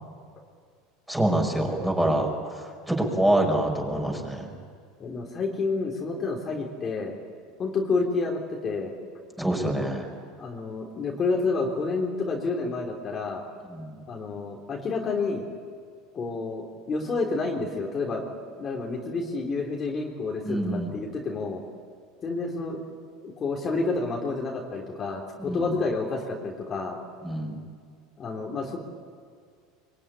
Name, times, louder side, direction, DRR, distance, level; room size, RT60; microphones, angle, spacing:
voice 1, 1.1-2.3 2.6-4.5 9.4-10.1 13.7-14.0 20.4-20.9 25.5-25.8 27.2-27.6, right 1 dB, 5° right, 1 dB, 5.8 m, -26 dB
voice 2, 5.0-7.2 7.6-8.9 10.4-13.4 14.1-15.5 16.1-18.3 18.6-21.6 22.2-22.8 23.2-27.0 28.2-28.8, left 3 dB, 30° left, -1 dB, 3.5 m, -29 dB
25.0 x 23.5 x 10.0 m, 2.1 s
supercardioid pair, 120°, 0 cm